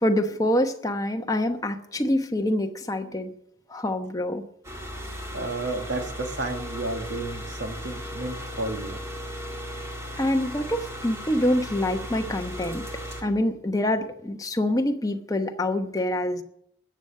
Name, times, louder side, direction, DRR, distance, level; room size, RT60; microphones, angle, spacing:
voice 1, 0.0-3.3 3.7-4.4 10.2-12.9 13.2-16.4, left 1 dB, 20° left, 5 dB, 1.0 m, -26 dB
sound 1, 4.6-13.2, equal, 15° right, 2.0 m, -36 dB
voice 2, 5.3-9.0, right 2 dB, 70° right, 5 dB, 2.0 m, -32 dB
13.0 x 8.0 x 7.5 m, 0.74 s
head